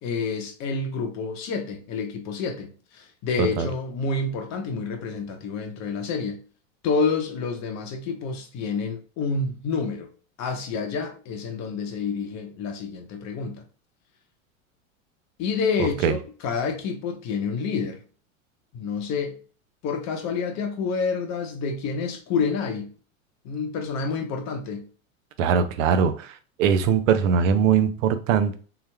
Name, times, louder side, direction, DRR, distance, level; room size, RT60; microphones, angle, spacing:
voice 1, 0.0-6.4 6.8-10.1 10.4-13.7 15.4-18.0 18.7-19.4 19.8-22.9 23.4-24.9, left 5 dB, 40° left, 0.8 m, -28 dB
voice 2, 15.8-16.2 25.4-28.6, right 7 dB, 65° right, 0.7 m, -21 dB
3.7 x 3.0 x 2.2 m
hypercardioid pair, 100°, 42 cm